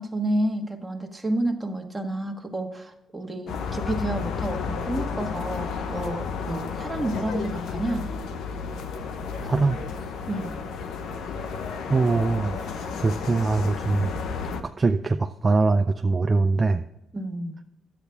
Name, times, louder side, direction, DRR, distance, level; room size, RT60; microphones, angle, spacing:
voice 1, 0.0-8.1 10.3-10.5 17.1-17.6, right 1 dB, 10° right, 3 dB, 1.4 m, -30 dB
sound 1, 3.5-14.6, left 5 dB, 75° left, 0.9 m, -32 dB
voice 2, 9.4-9.8 11.9-14.1 14.8-16.8, right 3 dB, 30° right, 7 dB, 0.5 m, -22 dB
10.0 x 8.2 x 3.5 m, 0.86 s
cardioid pair, 90°, 0 cm